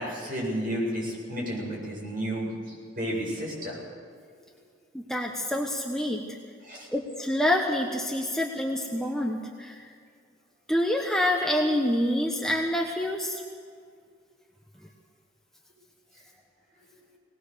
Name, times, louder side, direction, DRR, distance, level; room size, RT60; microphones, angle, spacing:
voice 1, 0.0-3.8 6.7-6.9, equal, 45° right, -3 dB, 7.7 m, -32 dB
voice 2, 4.9-6.2 6.9-9.9 10.7-13.4, left 1 dB, 5° left, 0 dB, 1.2 m, -27 dB
20.0 x 19.0 x 6.8 m, 2.2 s
head